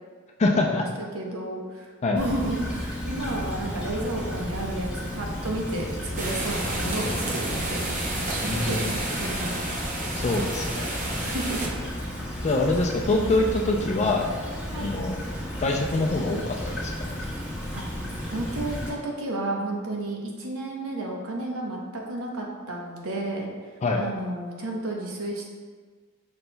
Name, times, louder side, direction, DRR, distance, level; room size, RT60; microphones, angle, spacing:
voice 1, 0.4-0.8 2.0-2.2 8.5-9.0 10.2-10.9 12.4-14.3 14.8-15.2 15.6-16.9 23.8-24.0, left 2 dB, 30° left, 1 dB, 0.4 m, -24 dB
voice 2, 1.1-1.9 2.1-9.7 11.2-11.8 14.7-14.9 17.7-17.8 18.2-23.5 24.0-25.5, right 1 dB, 70° right, 0 dB, 0.8 m, -32 dB
Stream / Trickle dribble, 2.2-18.9, equal, 5° right, 1.3 m, -33 dB
sound 1, 6.2-11.7, right 1 dB, 35° right, 0.6 m, -31 dB
5.4 x 4.2 x 2.2 m, 1.5 s
head